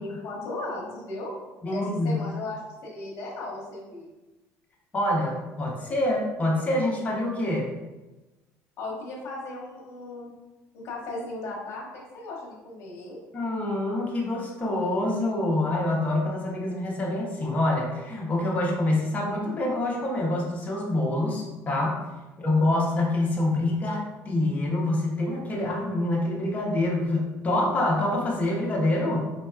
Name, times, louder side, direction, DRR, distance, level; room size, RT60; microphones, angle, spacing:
voice 1, 0.0-1.3 1.7-4.1 8.8-10.3 10.7-13.2, left 2 dB, 55° left, -3 dB, 1.3 m, -36 dB
voice 2, 1.6-2.2 4.9-7.7 13.3-22.0 22.4-29.3, left 1 dB, 25° left, -2 dB, 0.9 m, -26 dB
4.5 x 2.9 x 2.3 m, 1.1 s
cardioid pair, 140°, 6 cm